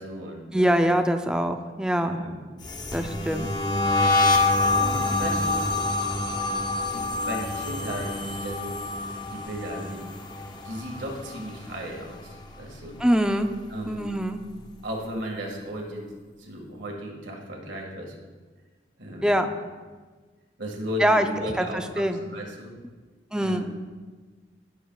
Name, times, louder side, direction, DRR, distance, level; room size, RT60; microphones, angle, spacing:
voice 1, 0.0-0.8 2.0-2.5 4.0-5.6 6.8-8.8 9.2-10.0 10.6-13.0 13.7-14.1 14.8-16.0 16.4-18.2 19.0-19.4 20.6-22.7 23.4-23.7, equal, 75° right, 0 dB, 1.9 m, -36 dB
voice 2, 0.5-2.2 2.9-3.5 13.0-13.5 13.9-14.4 19.2-19.5 21.0-21.3 21.6-22.2 23.3-23.7, equal, 5° right, 6 dB, 0.4 m, -23 dB
sound 1, 2.6-11.8 12.1-12.5 12.8-14.4, left 2 dB, 25° left, 0.8 m, -27 dB
16.5 x 7.1 x 2.4 m, 1.4 s
head